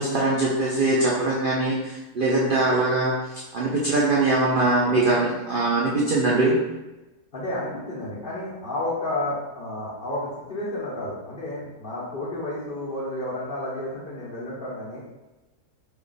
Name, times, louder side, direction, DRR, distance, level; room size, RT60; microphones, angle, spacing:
voice 1, 0.0-3.1 3.5-6.6, right 2 dB, 85° right, -5 dB, 0.4 m, -22 dB
voice 2, 7.3-15.0, left 1 dB, 40° left, -7 dB, 1.0 m, -31 dB
3.3 x 2.4 x 3.8 m, 1.0 s
omnidirectional pair, 1.7 m